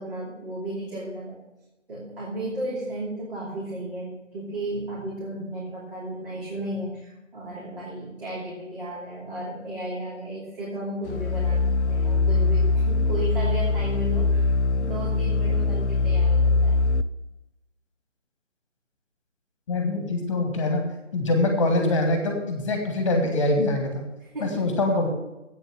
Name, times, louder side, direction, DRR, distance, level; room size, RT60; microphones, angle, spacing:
voice 1, 0.0-1.4 1.9-16.9 24.2-24.8, right 1 dB, 45° right, -6 dB, 3.0 m, -34 dB
sound 1, 11.1-17.0, left 3 dB, 65° left, 0.5 m, -22 dB
voice 2, 19.7-20.8 21.1-24.0 24.4-25.1, left 2 dB, 25° left, 3 dB, 1.6 m, -24 dB
8.4 x 7.0 x 7.7 m, 0.96 s
figure-of-eight pair, 155°, 38 cm